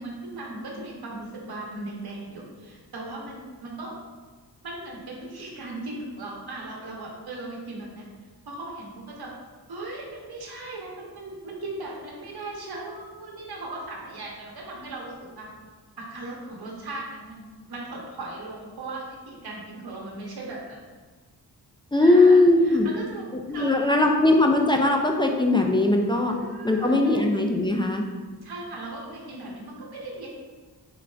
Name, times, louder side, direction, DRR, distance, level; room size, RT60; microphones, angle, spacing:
voice 1, 0.0-3.9 4.6-8.1 8.5-9.3 9.7-15.5 16.0-20.8 22.0-23.3 23.5-23.9 24.3-24.4 26.3-27.3 28.4-30.3, right 2 dB, 65° right, -2 dB, 1.0 m, -38 dB
voice 2, 21.9-22.9 23.5-26.3 26.6-28.0, left 2 dB, 15° left, 1 dB, 0.3 m, -19 dB
3.9 x 3.3 x 3.3 m, 1.4 s
wide cardioid pair, 95°, 41 cm